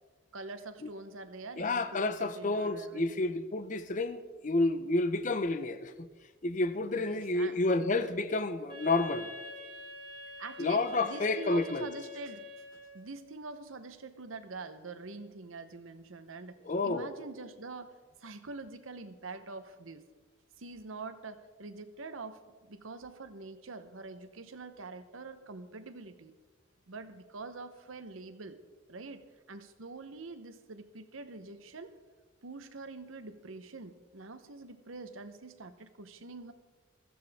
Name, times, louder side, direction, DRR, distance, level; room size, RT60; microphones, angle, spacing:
voice 1, 0.3-3.2 6.9-7.6 10.4-12.4 12.7-20.0 20.6-26.3 26.9-28.6 28.9-31.9 32.4-36.5, right 3 dB, 85° right, 0.9 m, -45 dB
voice 2, 1.6-6.1 6.4-9.3 10.6-11.9 16.7-17.1, left 2 dB, 40° left, 0.6 m, -30 dB
Wind instrument woodwind instrument, 8.7-13.1, left 2 dB, 25° right, 2.1 m, -46 dB
15.5 x 14.0 x 3.6 m
head